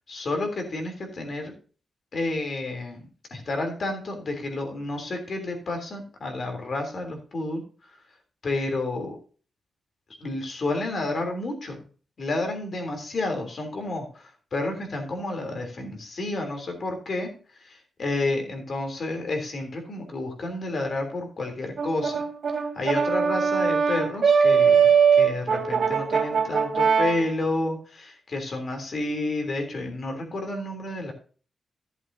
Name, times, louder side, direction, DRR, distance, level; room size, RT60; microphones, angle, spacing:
voice 1, 0.1-1.5 2.1-3.0 3.3-8.0 8.4-9.2 10.2-11.8 12.2-17.3 17.6-22.2 22.5-31.1, left 2 dB, 45° left, 4 dB, 3.2 m, -30 dB
Brass instrument, 21.8-27.2, right 6 dB, 60° right, 2.1 m, -21 dB
15.0 x 7.8 x 2.7 m, 0.39 s
wide cardioid pair, 150°, 0 cm